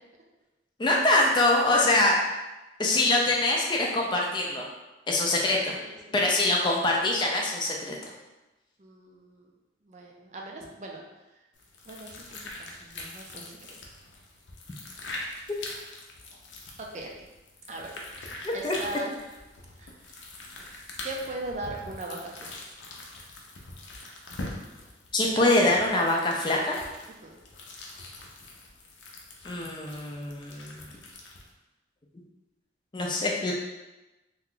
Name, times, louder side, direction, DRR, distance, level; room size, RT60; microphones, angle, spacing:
voice 1, 0.8-2.2 2.8-4.7 5.1-5.7 6.1-8.0 18.4-18.7 25.1-26.8 29.4-30.8 32.9-33.5, left 2 dB, 25° left, -1 dB, 0.4 m, -24 dB
voice 2, 1.7-2.2 5.3-6.0 8.8-9.5 9.8-11.0 11.9-13.6 13.9-14.0 16.8-17.1 17.7-17.9 18.4-19.1 19.8-20.3 20.5-22.7 27.2-27.4, right 2 dB, 40° right, 0 dB, 0.4 m, -40 dB
sound 1, 11.5-31.5, left 2 dB, 80° left, 0.6 m, -43 dB
2.8 x 2.2 x 3.7 m, 1.0 s
head